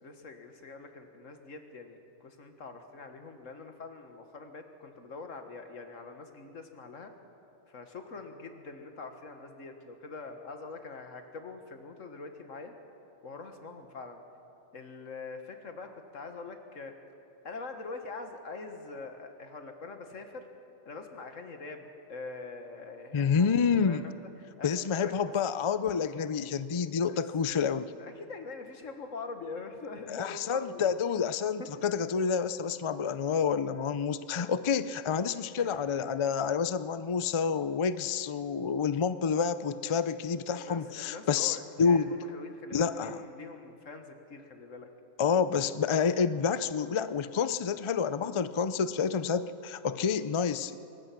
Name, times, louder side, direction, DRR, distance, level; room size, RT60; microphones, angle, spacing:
voice 1, 0.0-7.1 7.7-12.7 13.2-14.2 14.7-16.9 17.4-20.5 20.9-23.5 23.9-24.1 24.6-25.1 27.1-27.2 28.0-30.9 31.6-31.7 35.6-35.8 39.9-40.0 40.5-44.9, left 3 dB, 75° left, 6 dB, 1.9 m, -44 dB
voice 2, 23.1-24.1 24.6-27.9 30.1-42.1 42.7-43.2 45.2-50.8, left 6 dB, 55° left, 14 dB, 0.3 m, -28 dB
23.0 x 20.0 x 6.0 m, 2.7 s
omnidirectional pair, 1.3 m